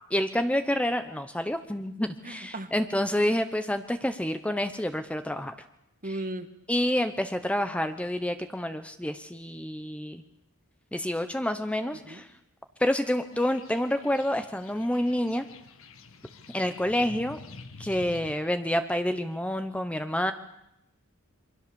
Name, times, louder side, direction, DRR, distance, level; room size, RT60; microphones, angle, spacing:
voice 1, 0.1-5.5 6.7-10.2 10.9-12.3 12.8-15.4 16.5-17.4 17.8-20.3, left 1 dB, 5° left, 9 dB, 0.9 m, -28 dB
voice 2, 2.2-2.7 6.0-6.5 12.1-12.2 20.2-20.3, right 1 dB, 40° right, 10 dB, 1.6 m, -36 dB
sound 1, 13.3-18.3, left 3 dB, 65° left, 1.8 m, -48 dB
27.5 x 23.5 x 7.0 m, 0.84 s
head